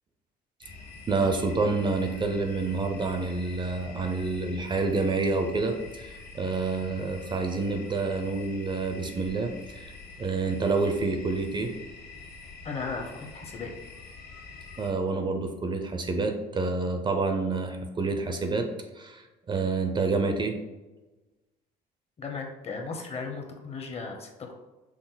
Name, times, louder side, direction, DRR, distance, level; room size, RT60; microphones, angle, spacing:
sound 1, 0.6-14.9, left 3 dB, 65° left, 1.3 m, -46 dB
voice 1, 1.1-9.9 10.2-11.7 14.8-18.7 19.0-20.6, right 3 dB, 30° right, 5 dB, 0.5 m, -28 dB
voice 2, 12.6-13.7 22.2-24.3, left 4 dB, 35° left, 3 dB, 0.8 m, -36 dB
6.0 x 2.0 x 3.9 m, 1.1 s
cardioid pair, 110°, 17 cm